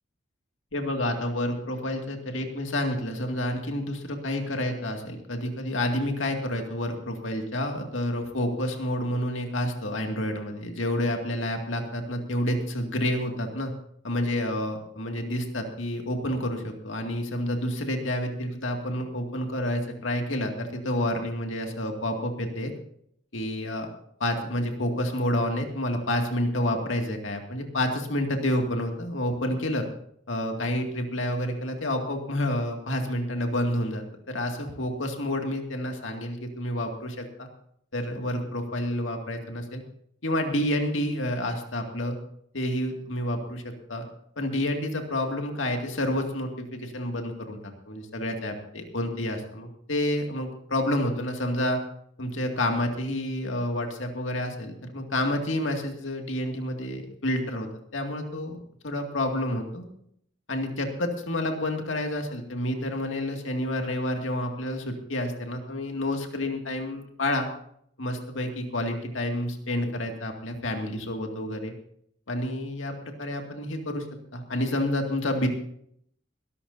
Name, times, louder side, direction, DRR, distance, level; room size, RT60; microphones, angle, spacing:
voice 1, 0.7-13.7 14.0-22.7 23.3-23.9 24.2-29.8 30.3-37.5 37.9-39.8 40.2-42.2 42.5-44.0 44.4-51.8 52.2-58.6 58.8-59.8 60.5-67.5 68.0-71.7 72.3-74.0 74.3-75.5, left 1 dB, 85° left, 3 dB, 2.3 m, -29 dB
22.0 x 13.0 x 2.7 m, 0.68 s
head